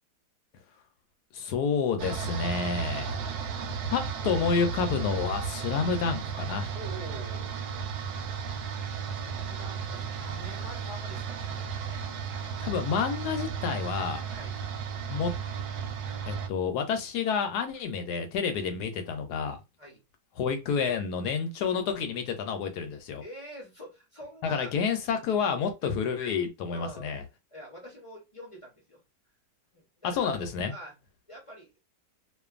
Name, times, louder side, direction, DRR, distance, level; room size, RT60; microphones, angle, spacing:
voice 1, 1.3-3.2 3.9-6.7 12.6-14.2 15.1-15.3 16.3-19.6 20.4-23.2 24.4-27.2 30.0-30.7, left 6 dB, 75° left, 1.1 m, -29 dB
sound 1, 2.0-16.5, right 6 dB, 75° right, 1.0 m, -34 dB
voice 2, 3.0-3.4 6.7-7.5 9.1-12.5 14.3-14.6 19.8-20.0 23.2-24.7 25.8-25.9 26.7-27.2 27.5-29.0 29.7-30.2 30.7-30.9 31.3-31.8, equal, 30° left, 0.6 m, -46 dB
2.5 x 2.5 x 2.3 m
omnidirectional pair, 1.8 m